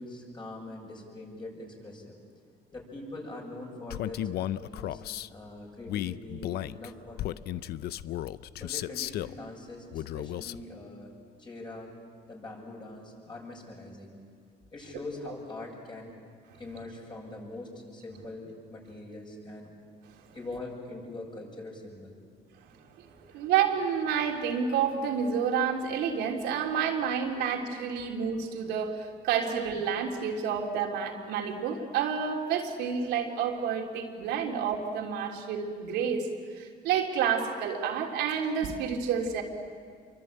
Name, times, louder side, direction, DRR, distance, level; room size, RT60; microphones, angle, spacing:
voice 1, 0.0-2.2 2.7-5.0 5.3-7.7 8.5-11.1 11.4-11.9 12.3-14.2 14.7-16.1 16.6-19.7 20.3-22.2 23.2-23.4 27.3-27.5, left 2 dB, 25° left, -1 dB, 7.8 m, -43 dB
Male speech man speaking, 3.9-5.3 5.9-9.4 9.9-10.6, left 13 dB, 70° left, 0.6 m, -34 dB
voice 2, 23.3-36.3 36.6-39.4, right 7 dB, 85° right, 1 dB, 3.3 m, -29 dB
27.5 x 24.0 x 9.0 m, 2.1 s
cardioid pair, 110°, 17 cm